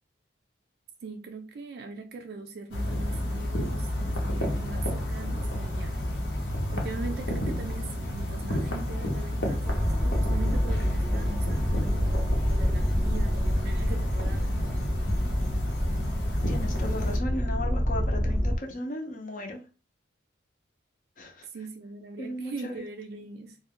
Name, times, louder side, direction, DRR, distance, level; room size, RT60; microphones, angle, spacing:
voice 1, 1.0-6.0 6.7-14.7 21.4-23.6, right 3 dB, 55° right, 0.3 m, -41 dB
sound 1, 2.7-17.2, left 1 dB, 75° left, 0.8 m, -30 dB
sound 2, 9.6-18.6, equal, ahead, 0.6 m, -28 dB
voice 2, 16.5-19.6 21.2-21.5 22.2-22.9, left 1 dB, 45° left, 0.6 m, -35 dB
2.5 x 2.2 x 3.5 m
head